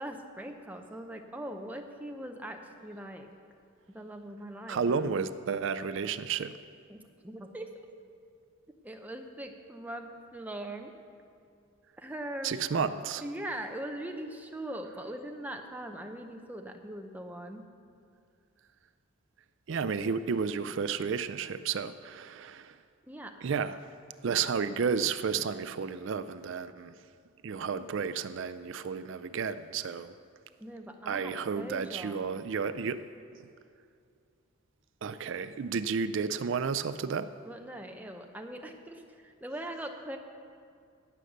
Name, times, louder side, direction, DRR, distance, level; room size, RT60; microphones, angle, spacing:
voice 1, 0.0-3.3 3.9-5.1 6.9-7.7 8.8-10.9 12.0-12.5 13.2-17.7 23.1-23.4 30.6-32.5 37.4-40.2, right 1 dB, 5° right, 4 dB, 0.7 m, -41 dB
voice 2, 4.7-6.6 12.4-13.2 19.7-22.8 23.4-23.8 24.2-26.9 27.4-30.1 31.1-33.0 35.0-37.3, right 6 dB, 55° right, 13 dB, 0.4 m, -32 dB
17.5 x 6.5 x 6.5 m, 2.3 s
head